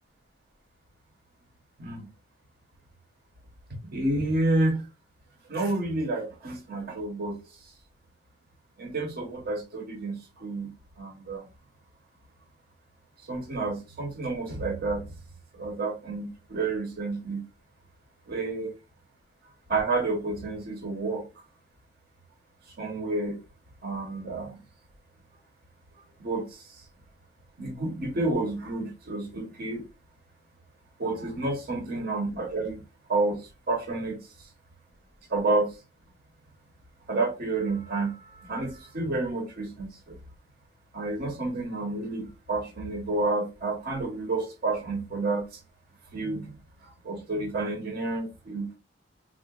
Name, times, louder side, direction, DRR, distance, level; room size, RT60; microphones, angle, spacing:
voice 1, 3.8-4.8 5.5-7.4 8.8-10.7 11.0-11.4 13.3-15.1 15.5-17.4 18.3-18.8 19.7-21.3 22.8-23.4 23.8-24.6 26.2-26.6 27.6-29.8 31.0-32.8 33.1-34.2 35.3-35.7 37.1-40.2 40.9-45.4 46.1-46.5 47.0-48.8, right 2 dB, 50° right, 0.8 m, -30 dB
3.6 x 2.1 x 2.3 m
head